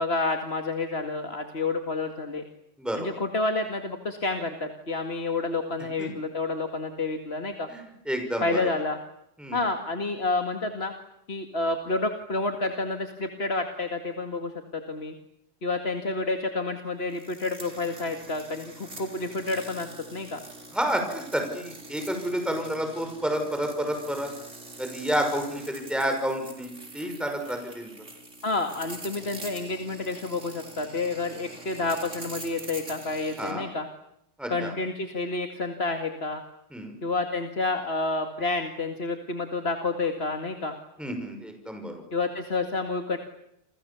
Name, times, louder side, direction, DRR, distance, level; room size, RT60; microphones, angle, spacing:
voice 1, 0.0-2.4 3.0-7.7 8.4-9.0 9.5-10.9 11.3-15.1 15.6-20.4 28.4-33.9 34.5-36.4 37.0-40.8 42.1-43.2, left 3 dB, 60° left, 5 dB, 2.4 m, -29 dB
voice 2, 2.8-3.1 6.0-6.1 7.7-8.6 9.4-9.6 20.7-24.3 24.8-27.9 33.4-33.6 34.4-34.7 36.7-36.9 41.0-41.9, equal, ahead, 4 dB, 5.9 m, -30 dB
sound 1, 17.1-33.5, right 2 dB, 85° right, 4.7 m, -45 dB
29.5 x 27.0 x 7.2 m, 0.78 s
omnidirectional pair, 1.2 m